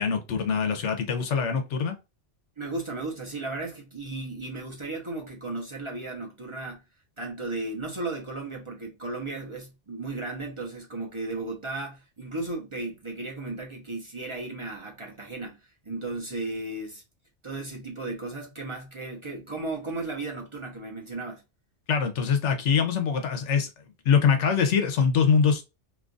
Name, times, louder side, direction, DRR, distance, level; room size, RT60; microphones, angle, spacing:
voice 1, 0.0-2.0 21.9-23.7 24.0-25.6, left 6 dB, 85° left, 1.1 m, -23 dB
voice 2, 2.6-6.8 7.2-17.0 17.4-21.4, right 2 dB, 30° right, 0.7 m, -35 dB
2.9 x 2.4 x 3.8 m
omnidirectional pair, 1.2 m